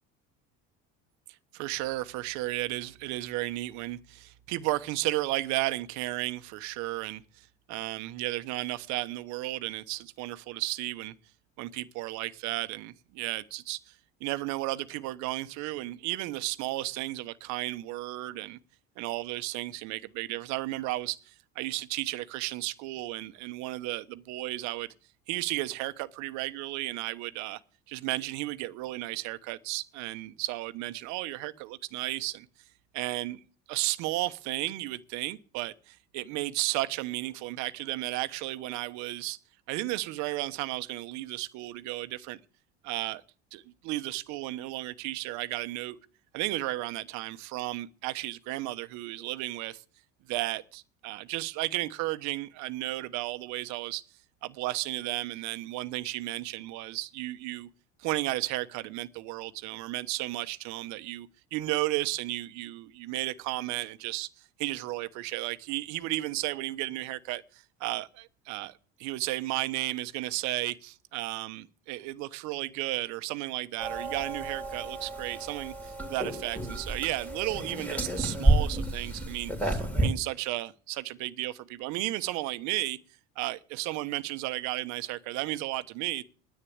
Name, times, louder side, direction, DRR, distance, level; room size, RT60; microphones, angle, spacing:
voice 1, 1.5-11.1 11.6-13.9 14.2-18.6 19.0-24.9 25.3-27.6 27.9-32.5 32.9-33.4 33.7-39.4 39.7-42.4 42.8-43.2 43.5-46.0 46.3-49.8 50.3-54.0 54.4-57.7 58.0-64.3 64.6-83.0 83.4-86.2, right 18 dB, 70° right, 1.1 m, -34 dB
sound 1, 73.8-80.1, right 2 dB, 5° left, 3.1 m, -30 dB
10.0 x 8.6 x 8.6 m
cardioid pair, 120°, 30 cm